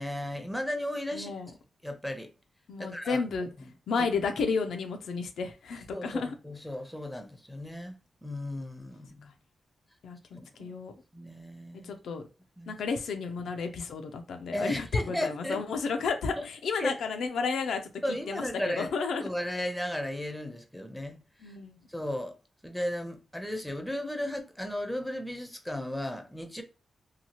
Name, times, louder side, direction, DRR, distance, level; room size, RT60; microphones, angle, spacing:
voice 1, 0.0-1.3 1.8-2.3 2.8-3.2 3.6-3.7 5.9-9.3 10.3-10.7 11.1-11.9 12.6-12.8 14.5-15.6 16.4-16.5 16.8-16.9 18.0-18.9 19.2-21.5 21.9-22.4 22.6-26.6, left 1 dB, 5° left, 0.6 m, -35 dB
voice 2, 1.1-1.5 2.7-3.5 3.9-6.3 10.0-10.9 11.8-12.2 12.7-19.2 21.4-21.8, left 4 dB, 85° left, 0.4 m, -32 dB
2.8 x 2.3 x 2.9 m
cardioid pair, 65°, 0 cm